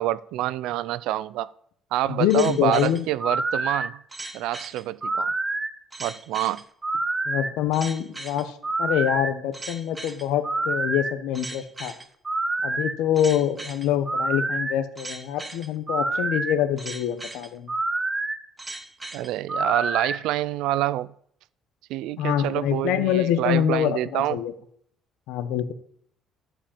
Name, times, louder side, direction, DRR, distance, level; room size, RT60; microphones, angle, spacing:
voice 1, 0.0-1.5 1.9-4.0 4.3-5.3 6.0-6.6 19.1-21.1 21.9-24.4, right 14 dB, 85° right, 0.4 m, -27 dB
voice 2, 2.1-3.0 7.3-8.5 8.8-11.9 12.6-17.7 22.2-24.5 25.3-25.7, left 10 dB, 90° left, 1.1 m, -25 dB
sound 1, 2.3-20.2, right 2 dB, 15° right, 0.8 m, -29 dB
11.5 x 5.1 x 8.6 m
cardioid pair, 145°, 0 cm